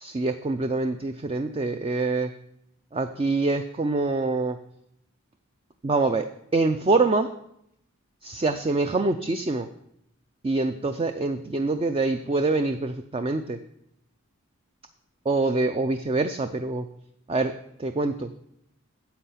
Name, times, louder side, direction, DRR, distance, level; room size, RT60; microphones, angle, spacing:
voice 1, 0.0-2.3 2.9-4.6 5.8-6.3 6.5-7.3 8.2-9.7 10.4-13.6 15.3-16.9 17.3-17.5 17.8-18.3, right 3 dB, 25° right, 8 dB, 0.4 m, -25 dB
10.0 x 7.7 x 5.7 m, 0.75 s
head